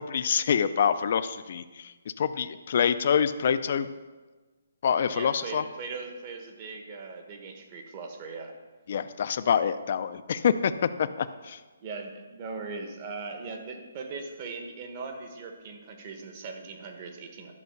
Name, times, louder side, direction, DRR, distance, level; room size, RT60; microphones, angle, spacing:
voice 1, 0.1-3.9 4.8-5.6 8.9-10.7 11.0-11.6, left 7 dB, 40° left, 12 dB, 0.4 m, -26 dB
voice 2, 5.1-8.5 11.8-17.5, right 4 dB, 30° right, 4 dB, 1.1 m, -39 dB
11.0 x 5.5 x 6.7 m, 1.3 s
hypercardioid pair, 170°, 0 cm